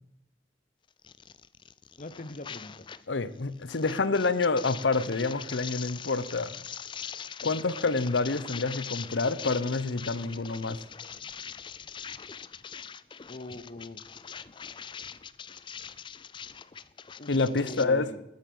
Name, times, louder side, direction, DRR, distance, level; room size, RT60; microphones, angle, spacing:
sound 1, 1.0-3.1 3.3-17.8, left 7 dB, 25° left, 0.4 m, -42 dB
voice 1, 2.0-2.9 7.4-7.5 13.3-14.2 17.2-17.3 17.6-18.2, left 2 dB, 40° left, 12 dB, 0.9 m, -42 dB
voice 2, 3.1-6.6 7.4-10.8 17.3-18.2, left 3 dB, 90° left, 15 dB, 0.8 m, -28 dB
14.0 x 10.5 x 5.5 m, 0.85 s
head